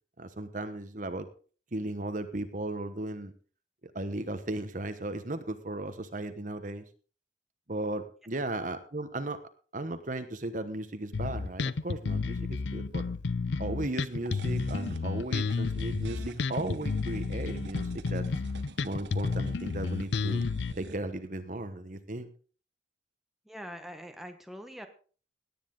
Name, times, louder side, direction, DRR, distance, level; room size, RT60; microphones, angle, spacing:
voice 1, 0.2-1.3 1.7-3.3 3.9-6.8 7.7-9.4 9.7-13.0 13.6-18.2 18.8-20.4 20.8-22.3, right 2 dB, 45° right, 10 dB, 1.2 m, -36 dB
Bass guitar, 11.1-20.7, left 4 dB, 75° left, 0.5 m, -31 dB
sound 1, 14.1-21.0, right 2 dB, 70° right, 1.3 m, -46 dB
voice 2, 23.5-24.9, equal, ahead, 5 dB, 1.2 m, -43 dB
17.5 x 10.0 x 3.9 m, 0.40 s
head